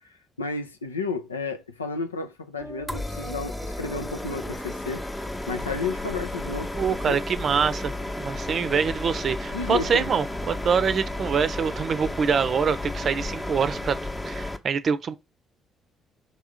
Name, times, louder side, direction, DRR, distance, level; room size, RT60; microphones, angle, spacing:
voice 1, 0.4-5.0 5.5-7.2 9.5-10.1, left 4 dB, 80° left, 0.6 m, -32 dB
sound 1, 2.6-7.9, right 1 dB, 10° right, 1.0 m, -43 dB
sound 2, 2.9-14.6, left 1 dB, 15° left, 0.9 m, -33 dB
sound 3, 5.6-14.0, left 5 dB, 60° left, 1.0 m, -45 dB
voice 2, 6.7-14.0 14.2-15.1, right 6 dB, 45° right, 0.6 m, -25 dB
5.6 x 3.6 x 4.8 m
figure-of-eight pair, 45°, 0 cm